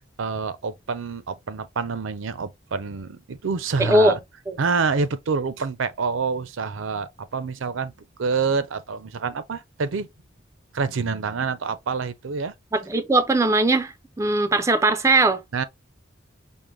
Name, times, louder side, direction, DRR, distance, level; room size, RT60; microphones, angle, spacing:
voice 1, 0.0-4.2 4.6-7.9 8.2-10.1 10.7-12.5 15.5-15.6, right 5 dB, 80° right, 0.5 m, -27 dB
voice 2, 3.8-4.2 4.5-4.6 12.7-15.4, right 2 dB, 15° right, 0.4 m, -20 dB
5.3 x 2.1 x 3.1 m
head